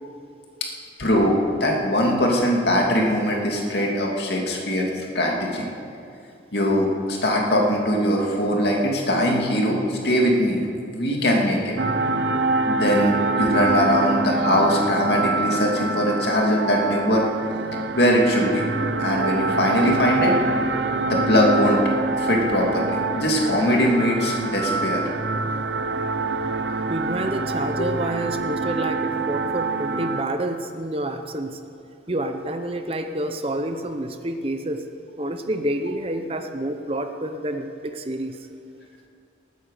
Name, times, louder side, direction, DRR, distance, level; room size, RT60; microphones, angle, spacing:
voice 1, 1.0-5.7 6.5-10.7 10.9-11.8 12.7-17.3 17.9-18.7 19.0-20.3 21.0-21.8 22.1-25.1, equal, 65° left, -1 dB, 2.5 m, -21 dB
sound 1, 11.8-30.2, right 3 dB, 80° right, 0.7 m, -25 dB
voice 2, 26.9-31.6 32.1-34.8 35.2-38.4, right 1 dB, 30° right, 7 dB, 0.8 m, -28 dB
19.5 x 9.4 x 6.6 m, 2.5 s
head